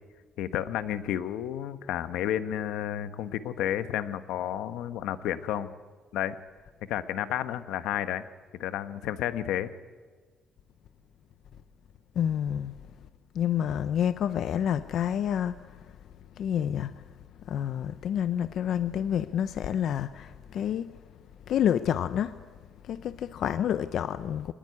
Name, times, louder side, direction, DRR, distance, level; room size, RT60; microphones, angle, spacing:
voice 1, 0.4-5.7 6.1-6.4 6.9-8.2 8.5-9.7, left 11 dB, 85° left, 1.3 m, -31 dB
voice 2, 12.2-12.8 13.3-15.8 16.4-17.0 17.5-20.9 21.5-22.3 22.8-24.5, left 9 dB, 60° left, 0.7 m, -28 dB
25.0 x 20.0 x 9.7 m
cardioid pair, 140°, 0 cm